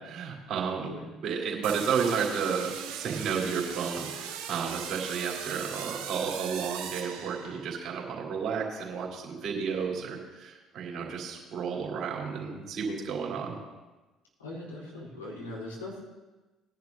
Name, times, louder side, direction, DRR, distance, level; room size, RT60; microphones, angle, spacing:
voice 1, 0.0-0.9 1.2-13.6, right 6 dB, 55° right, -1 dB, 3.2 m, -32 dB
sound 1, 1.6-7.8, right 8 dB, 75° right, 1.7 m, -39 dB
voice 2, 14.4-16.0, left 2 dB, 90° left, -5 dB, 3.5 m, -40 dB
19.0 x 10.5 x 2.7 m, 1.2 s
hypercardioid pair, 55°, 0 cm